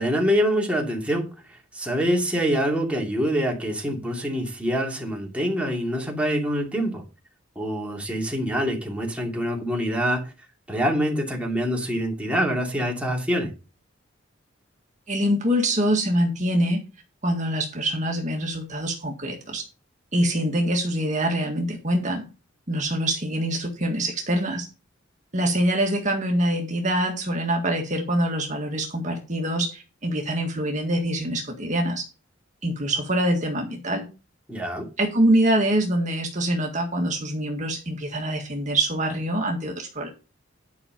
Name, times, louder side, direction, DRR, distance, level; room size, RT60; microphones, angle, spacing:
voice 1, 0.0-7.0 7.6-10.3 10.7-13.5 34.5-34.9, equal, 5° right, 2.6 m, -25 dB
voice 2, 15.1-16.8 17.2-19.6 20.1-22.2 22.7-24.7 25.3-32.0 32.6-34.0 35.0-40.1, right 1 dB, 40° right, 1.9 m, -24 dB
10.5 x 5.7 x 5.2 m
head